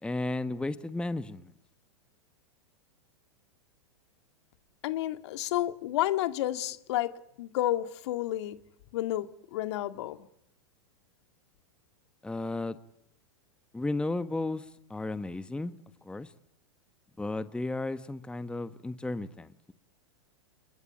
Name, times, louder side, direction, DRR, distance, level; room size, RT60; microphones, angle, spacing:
voice 1, 0.0-1.5 12.2-12.8 13.7-14.6 14.9-15.7 16.0-16.3 17.2-19.7, left 2 dB, 5° left, 1.3 m, -34 dB
voice 2, 4.8-7.1 7.4-8.6 8.9-10.2, left 14 dB, 60° left, 2.1 m, -30 dB
29.0 x 22.5 x 9.0 m
hypercardioid pair, 110°, 16 cm